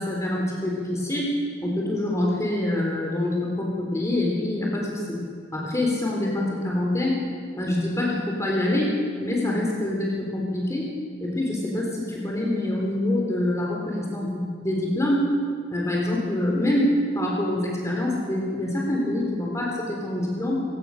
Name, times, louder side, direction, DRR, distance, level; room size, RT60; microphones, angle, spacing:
voice 1, 0.0-1.3 1.6-5.2 5.5-7.2 7.6-8.9 9.2-10.9 11.2-15.3 15.7-20.6, left 1 dB, 15° left, -2 dB, 3.7 m, -25 dB
30.0 x 17.0 x 6.6 m, 2.1 s
head